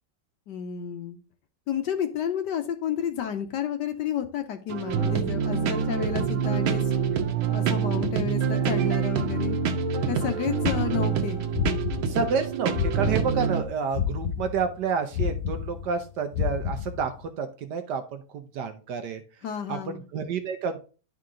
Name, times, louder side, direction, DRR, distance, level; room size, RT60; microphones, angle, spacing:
voice 1, 0.5-1.2 1.7-6.9 7.5-9.6 10.1-11.4 19.4-20.0, left 9 dB, 70° left, 7 dB, 1.2 m, -31 dB
sound 1, 4.7-13.6, right 6 dB, 90° right, 1.7 m, -26 dB
sound 2, 10.6-13.6 13.9-17.3, left 8 dB, 50° left, 1.4 m, -30 dB
voice 2, 12.1-19.2 19.7-20.8, right 5 dB, 70° right, 8 dB, 1.1 m, -29 dB
11.0 x 3.8 x 3.7 m, 0.36 s
omnidirectional pair, 2.2 m